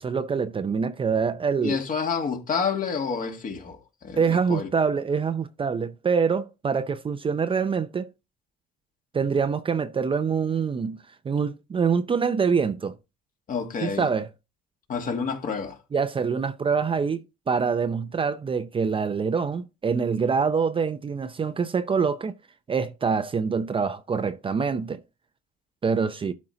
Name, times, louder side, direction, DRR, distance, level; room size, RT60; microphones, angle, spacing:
voice 1, 0.0-1.8 4.2-8.1 9.1-13.0 13.8-14.3 15.9-17.2 17.5-22.3 22.7-25.0 25.8-26.3, right 5 dB, 25° right, 0.6 m, -25 dB
voice 2, 1.6-4.7 13.5-14.1 14.9-15.8, left 5 dB, 40° left, 2.0 m, -29 dB
12.0 x 4.3 x 3.8 m
supercardioid pair, 90°, 20 cm